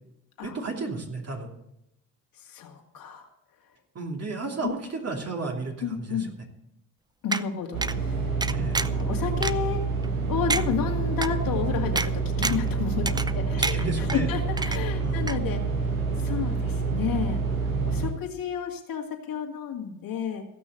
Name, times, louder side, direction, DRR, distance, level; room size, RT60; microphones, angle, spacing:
voice 1, 0.4-1.5 3.9-4.8 5.0-6.3 8.5-8.8 13.7-14.3 15.0-15.3, right 3 dB, 35° right, 1 dB, 2.9 m, -33 dB
voice 2, 2.4-3.3 4.6-4.7 5.8-6.3 7.2-8.3 8.8-9.8 10.3-15.6 16.2-20.5, left 7 dB, 55° left, 1 dB, 2.3 m, -31 dB
sound 1, 7.3-7.4 7.8-8.0 8.4-9.0 9.4-9.5 10.0-10.1 10.5-10.6 11.2-11.3 12.0-12.1 12.4-12.7 13.1-13.4 13.6-14.2 14.6-15.0 15.3-15.4, right 3 dB, 10° right, 0.4 m, -28 dB
sound 2, 7.7-18.1, right 4 dB, 90° right, 1.5 m, -27 dB
15.5 x 6.1 x 7.8 m, 0.84 s
hypercardioid pair, 55°, 40 cm